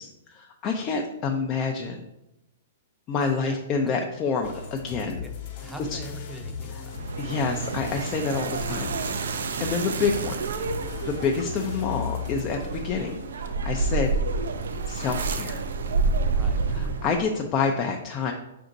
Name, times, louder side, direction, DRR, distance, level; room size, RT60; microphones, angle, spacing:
voice 1, 0.0-2.1 3.1-5.2 5.9-6.0 6.7-6.8 7.2-10.4 11.0-13.2 13.4-14.2 14.9-15.6 16.7-18.3, left 5 dB, 35° left, 2 dB, 0.4 m, -28 dB
sound 1, 4.4-13.5, left 5 dB, 50° left, 0.9 m, -38 dB
voice 2, 5.2-6.9 16.3-16.7, right 1 dB, 5° right, 3 dB, 0.6 m, -42 dB
sound 2, 6.9-17.3, right 4 dB, 75° right, 0.4 m, -29 dB
5.0 x 2.6 x 3.9 m, 0.92 s
hypercardioid pair, 120°, 0 cm